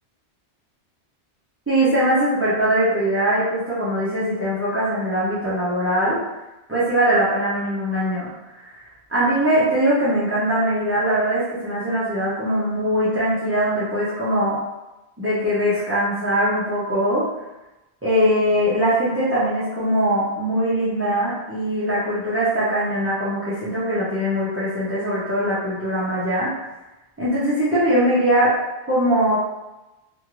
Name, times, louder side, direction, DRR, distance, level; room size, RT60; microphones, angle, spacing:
voice 1, 1.7-6.2 6.7-8.3 8.5-8.7 9.1-14.6 15.2-17.2 18.0-26.5 27.2-28.5 28.9-29.4, equal, 15° right, -11 dB, 0.5 m, -21 dB
2.6 x 2.5 x 3.0 m, 1.0 s
omnidirectional pair, 1.2 m